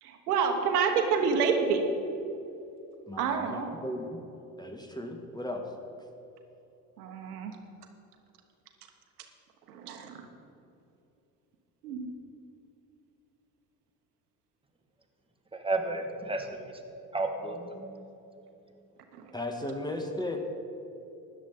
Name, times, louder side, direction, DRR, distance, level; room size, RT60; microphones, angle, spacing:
voice 1, 0.0-1.8 3.2-3.8 7.0-7.6 9.7-10.2 11.8-12.1 19.1-19.3, right 6 dB, 85° right, 5 dB, 1.2 m, -28 dB
voice 2, 3.1-4.2 4.6-5.7 19.3-20.4, left 1 dB, 10° left, 4 dB, 1.7 m, -36 dB
voice 3, 15.5-16.8 17.1-18.1, right 2 dB, 10° right, 3 dB, 1.8 m, -33 dB
13.0 x 9.9 x 5.3 m, 2.8 s
hypercardioid pair, 60°, 45 cm